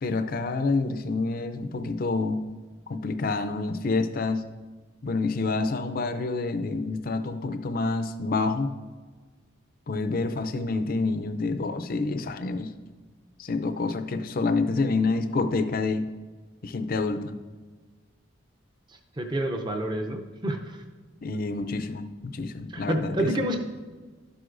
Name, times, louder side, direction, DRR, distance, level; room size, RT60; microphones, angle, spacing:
voice 1, 0.0-2.4 2.9-4.4 5.0-8.7 9.9-12.7 13.4-16.0 16.6-17.3 21.2-23.3, left 3 dB, 45° left, 9 dB, 0.5 m, -28 dB
voice 2, 19.2-20.8 22.7-23.6, right 1 dB, 20° right, 3 dB, 0.5 m, -28 dB
12.0 x 7.7 x 2.5 m, 1.4 s
head